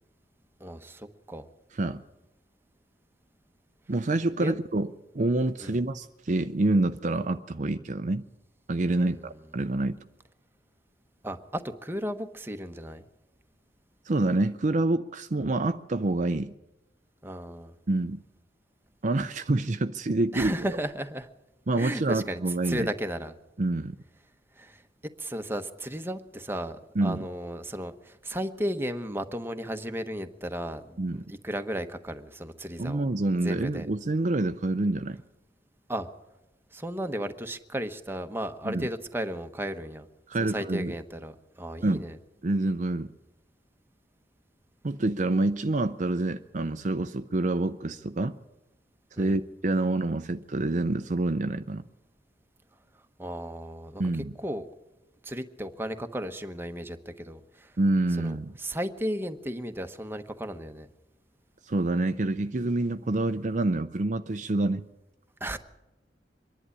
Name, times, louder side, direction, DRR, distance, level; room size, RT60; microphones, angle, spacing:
voice 1, 0.6-1.5 4.4-4.5 5.6-5.8 9.0-9.3 11.2-13.0 17.2-17.7 20.3-21.3 21.8-22.4 22.6-23.3 24.6-24.8 25.2-33.1 33.4-33.9 35.9-36.1 36.7-40.1 40.4-42.2 49.2-49.4 53.2-54.0 54.4-54.7 55.2-57.7 58.2-60.9 65.4-65.6, equal, 15° right, 7 dB, 1.0 m, -34 dB
voice 2, 3.9-8.3 8.7-10.0 14.1-16.5 17.9-18.2 19.0-20.5 21.7-22.9 23.6-24.0 27.0-27.2 31.0-31.2 32.8-35.2 38.6-38.9 40.3-40.9 41.8-42.0 42.4-43.1 44.8-48.4 49.2-51.8 54.0-54.3 57.8-58.5 61.6-64.9, right 2 dB, 45° right, 9 dB, 0.6 m, -27 dB
24.5 x 11.0 x 9.8 m, 0.98 s
head